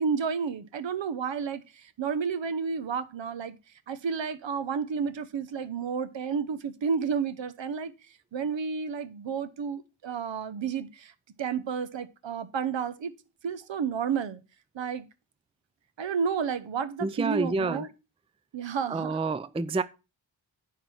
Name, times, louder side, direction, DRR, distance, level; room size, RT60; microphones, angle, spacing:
voice 1, 0.0-3.6 3.9-7.9 8.3-11.1 11.4-13.1 13.4-14.4 14.7-15.1 16.0-17.9 18.5-19.2, right 6 dB, 65° right, 1.0 m, -31 dB
voice 2, 17.0-17.9 18.9-19.8, right 3 dB, 15° right, 0.4 m, -28 dB
9.8 x 4.0 x 6.0 m
cardioid pair, 70°, 48 cm